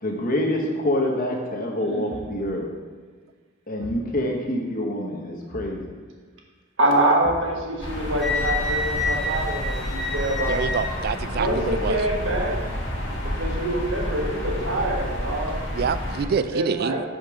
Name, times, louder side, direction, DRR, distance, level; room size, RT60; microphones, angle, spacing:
voice 1, 0.0-2.7 3.7-5.8, left 1 dB, 50° left, 0 dB, 1.1 m, -26 dB
voice 2, 1.8-2.3 6.8-10.6 11.3-12.6 13.2-15.6 16.3-17.0, right 1 dB, 80° right, -1 dB, 1.4 m, -25 dB
Thump thud, 2.1-2.5 3.8-4.1 5.5-5.9 7.2-7.6 8.9-9.5, right 1 dB, 25° right, 0.8 m, -40 dB
sound 1, 7.8-16.2, left 1 dB, 75° left, 1.6 m, -30 dB
Wind instrument woodwind instrument, 8.2-11.0, left 2 dB, ahead, 1.3 m, -28 dB
voice 3, 10.5-12.0 15.7-17.0, right 6 dB, 55° right, 12 dB, 0.3 m, -26 dB
5.2 x 5.1 x 6.0 m, 1.5 s
head